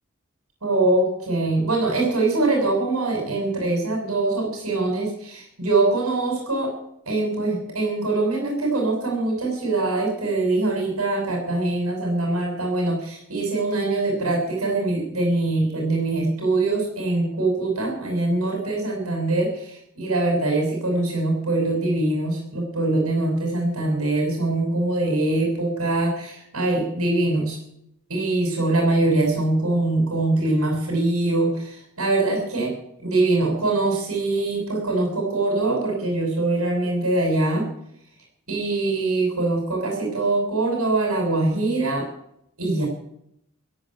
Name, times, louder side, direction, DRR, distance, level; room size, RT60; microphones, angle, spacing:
voice 1, 0.6-6.7 7.1-27.6 28.1-32.7 33.0-37.6 38.5-42.1 42.6-42.9, right 2 dB, 75° right, 0 dB, 6.9 m, -23 dB
16.5 x 8.6 x 9.0 m, 0.72 s
head